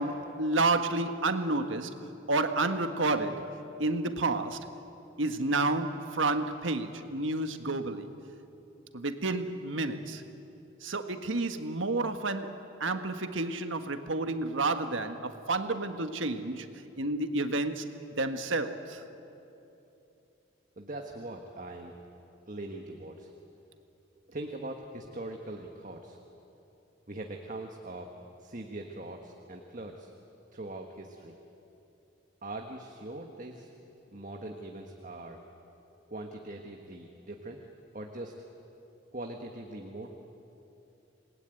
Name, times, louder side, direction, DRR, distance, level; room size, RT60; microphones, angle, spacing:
voice 1, 0.0-1.9 2.3-3.5 3.8-4.6 5.2-8.1 8.9-10.2 10.8-16.7 17.0-17.8 18.2-19.0, right 2 dB, 75° right, 1.5 m, -30 dB
voice 2, 20.8-21.9 22.5-23.3 24.3-26.2 27.1-28.1 28.4-30.1 30.5-31.3 32.4-33.7 34.1-35.4 36.1-37.6 37.9-38.3 39.1-40.2, right 2 dB, 40° right, 1.5 m, -41 dB
27.5 x 20.0 x 9.2 m
head